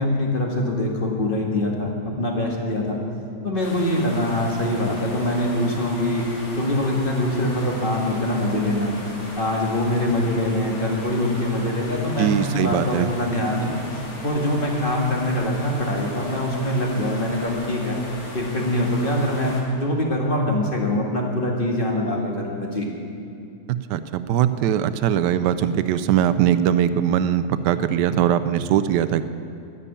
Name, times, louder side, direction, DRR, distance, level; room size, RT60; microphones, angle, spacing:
voice 1, 0.0-1.9 2.2-3.0 3.4-6.2 6.6-8.9 9.4-18.0 18.3-22.9, left 1 dB, 30° left, -1 dB, 2.0 m, -23 dB
sound 1, 3.6-19.6, left 1 dB, 60° left, 2.6 m, -38 dB
voice 2, 12.2-13.1 23.7-29.2, right 10 dB, 90° right, 13 dB, 1.2 m, -21 dB
11.0 x 11.0 x 8.4 m, 2.5 s
omnidirectional pair, 1.8 m